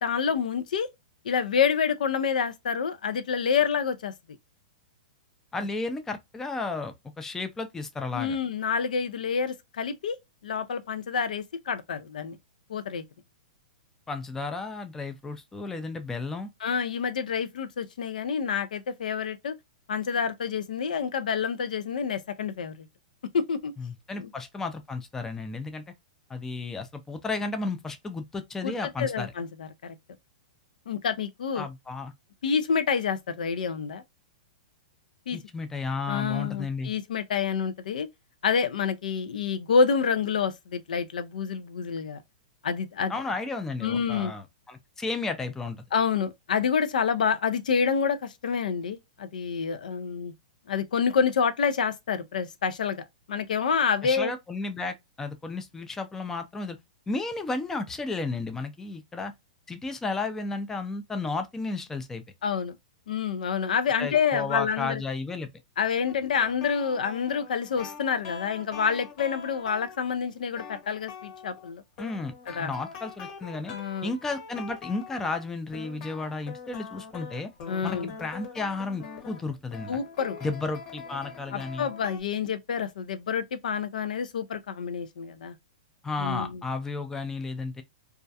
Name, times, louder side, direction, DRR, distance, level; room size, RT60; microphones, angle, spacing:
voice 1, 0.0-0.9 1.2-4.1 8.1-10.2 10.4-12.4 12.7-13.0 16.6-19.6 19.9-22.9 23.3-23.7 24.2-24.3 28.6-30.0 30.9-31.7 32.4-34.0 35.3-35.4 36.1-38.1 38.4-42.2 42.6-43.1 43.8-44.3 45.9-50.3 50.7-54.3 62.4-62.8 63.1-65.0 65.8-71.8 72.5-72.7 73.7-74.1 77.7-78.1 79.9-80.4 81.5-85.5 86.2-86.6, left 6 dB, 75° left, 0.4 m, -28 dB
voice 2, 5.5-8.4 14.1-16.5 23.8-25.8 26.3-29.3 31.5-32.1 35.3-36.9 43.1-45.8 54.0-56.8 57.1-59.3 59.7-62.2 64.0-65.5 72.0-72.3 72.6-73.7 74.0-77.5 77.8-80.0 80.4-81.9 86.0-87.8, left 3 dB, 10° left, 0.4 m, -33 dB
sound 1, 66.1-70.1 70.6-71.7 72.0-75.5 75.7-82.2, left 5 dB, 50° left, 1.0 m, -43 dB
2.3 x 2.1 x 2.6 m
hypercardioid pair, 130°, 4 cm